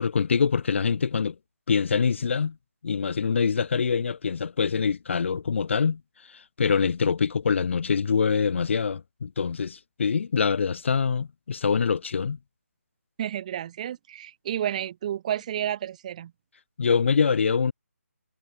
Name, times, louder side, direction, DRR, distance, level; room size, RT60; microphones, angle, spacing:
voice 1, 0.0-1.4 1.7-2.6 2.8-6.0 6.3-12.4 16.8-17.7, left 6 dB, 50° left, 0.3 m, -24 dB
voice 2, 13.2-16.3, right 10 dB, 25° right, 0.8 m, -31 dB
figure-of-eight pair, 160°, 8 cm